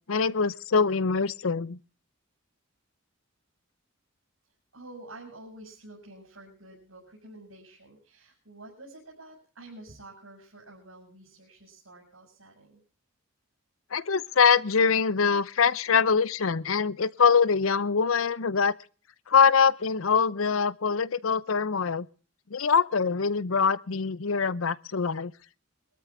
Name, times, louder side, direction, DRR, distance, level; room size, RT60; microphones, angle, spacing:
voice 1, 0.1-1.8 13.9-18.7 19.3-22.1 22.5-25.3, left 5 dB, 90° left, 0.7 m, -24 dB
voice 2, 4.7-12.8, right 2 dB, 90° right, 6.3 m, -49 dB
22.5 x 13.0 x 3.5 m
head